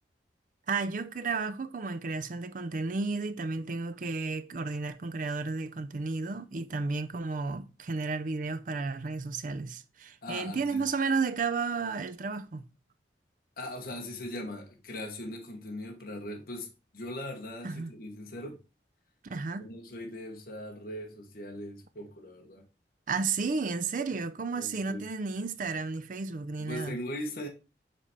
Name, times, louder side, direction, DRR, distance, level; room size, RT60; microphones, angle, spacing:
voice 1, 0.7-12.6 17.6-17.9 19.2-19.7 23.1-27.0, right 4 dB, 45° right, 0.5 m, -32 dB
voice 2, 10.2-10.8 13.6-18.6 19.6-22.6 24.5-25.0 26.6-27.5, left 1 dB, 55° left, 1.1 m, -40 dB
7.2 x 3.4 x 4.2 m
head